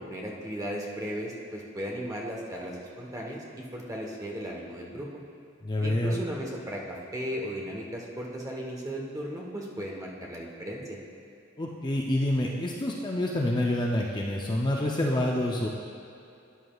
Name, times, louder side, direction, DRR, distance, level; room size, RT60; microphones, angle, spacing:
voice 1, 0.0-5.1 5.8-11.0, equal, 15° right, -2 dB, 1.1 m, -36 dB
voice 2, 5.6-6.1 11.6-15.7, left 1 dB, 20° left, -1 dB, 0.5 m, -27 dB
12.5 x 9.6 x 2.3 m, 2.6 s
head